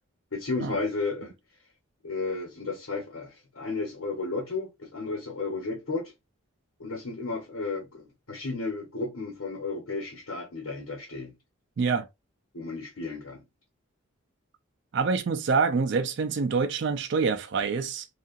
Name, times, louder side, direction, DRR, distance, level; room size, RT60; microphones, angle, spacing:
voice 1, 0.3-1.3 2.0-6.1 6.8-11.3 12.5-13.4, left 3 dB, 85° left, 1.0 m, -33 dB
voice 2, 11.8-12.1 14.9-18.1, right 5 dB, 55° right, 0.3 m, -26 dB
2.7 x 2.4 x 2.5 m
head